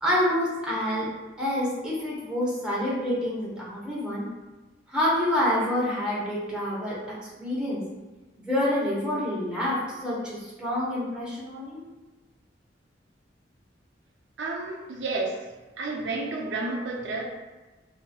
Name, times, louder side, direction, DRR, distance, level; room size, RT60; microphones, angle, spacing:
voice 1, 0.0-1.1 1.4-4.2 4.9-6.9 7.4-7.8 8.4-11.8, left 1 dB, 5° right, -8 dB, 1.1 m, -27 dB
voice 2, 14.4-15.4 15.8-17.2, right 3 dB, 80° right, 0 dB, 0.6 m, -31 dB
4.0 x 2.8 x 2.4 m, 1.2 s
head